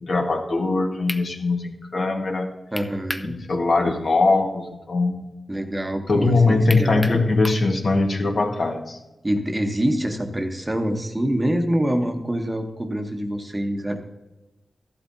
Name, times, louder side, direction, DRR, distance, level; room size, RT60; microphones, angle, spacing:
voice 1, 0.0-2.5 3.2-5.2 6.1-9.0, left 3 dB, 55° left, 2 dB, 1.4 m, -21 dB
sound 1, 0.7-0.8 1.1-1.3 2.8-3.3 3.7-3.8 6.7-7.7, left 1 dB, 10° left, 0.6 m, -32 dB
voice 2, 2.7-3.4 5.5-7.1 9.2-14.0, right 1 dB, 15° right, 4 dB, 1.0 m, -25 dB
13.5 x 12.0 x 2.7 m, 1.0 s
wide cardioid pair, 110°, 0 cm